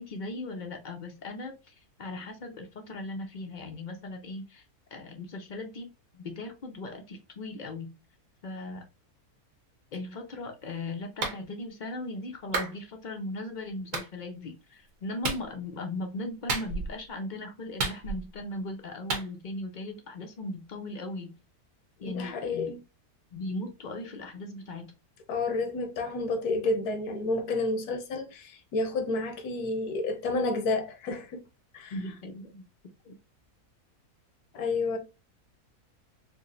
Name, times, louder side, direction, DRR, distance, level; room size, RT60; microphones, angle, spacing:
voice 1, 0.0-4.6 4.9-7.9 8.4-8.9 9.9-21.3 22.0-22.8 23.3-24.9 31.9-32.6 33.0-33.2, left 2 dB, 60° left, 0.5 m, -38 dB
Clapping, 11.2-11.4 12.5-12.7 13.9-14.1 15.2-15.5 16.5-17.0 17.8-18.4 19.1-19.3, right 3 dB, 60° right, 1.2 m, -31 dB
voice 2, 22.0-22.8 25.3-31.4 31.7-31.9 34.5-35.0, left 3 dB, 85° left, 1.3 m, -30 dB
4.7 x 2.0 x 2.5 m
omnidirectional pair, 1.6 m